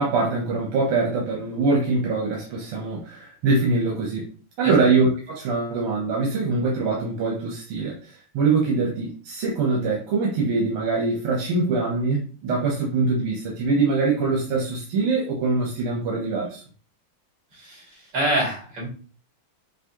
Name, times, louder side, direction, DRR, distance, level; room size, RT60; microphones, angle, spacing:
voice 1, 0.0-4.3 4.6-16.6, right 3 dB, 85° right, -2 dB, 1.9 m, -23 dB
voice 2, 18.1-18.9, right 1 dB, 55° right, -4 dB, 3.0 m, -25 dB
6.2 x 2.5 x 2.9 m, 0.38 s
omnidirectional pair, 2.4 m